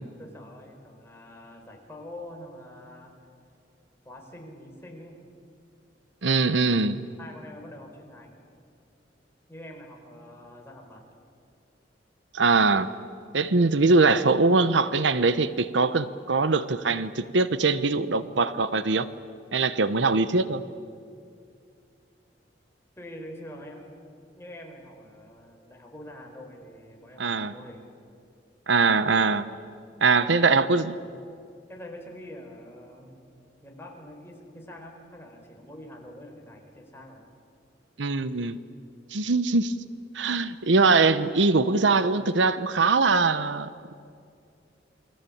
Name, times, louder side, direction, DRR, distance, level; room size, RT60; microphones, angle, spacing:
voice 1, 0.2-3.1 4.0-5.3 7.2-8.4 9.5-11.1 23.0-23.9 24.3-27.9 30.2-31.0 31.7-33.3 33.6-37.3, left 1 dB, 15° left, 4.4 m, -45 dB
voice 2, 6.2-7.0 12.3-12.9 13.3-19.1 19.5-20.6 27.2-27.5 28.7-29.5 30.0-30.9 38.0-38.6 39.1-39.7 40.1-43.7, right 3 dB, 80° right, 0.9 m, -22 dB
28.5 x 21.5 x 8.7 m
head